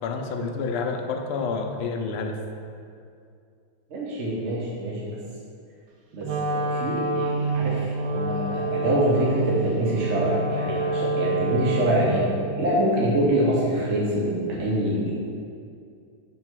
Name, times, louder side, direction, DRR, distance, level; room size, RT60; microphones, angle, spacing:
voice 1, 0.0-2.4, left 4 dB, 85° left, 4 dB, 1.5 m, -29 dB
voice 2, 3.9-5.0 6.1-12.3 12.6-15.1, right 1 dB, 50° right, -5 dB, 0.9 m, -25 dB
Wind instrument woodwind instrument, 6.2-12.2, right 2 dB, 80° right, 1.5 m, -27 dB
5.4 x 3.8 x 5.9 m, 2.4 s
omnidirectional pair, 2.3 m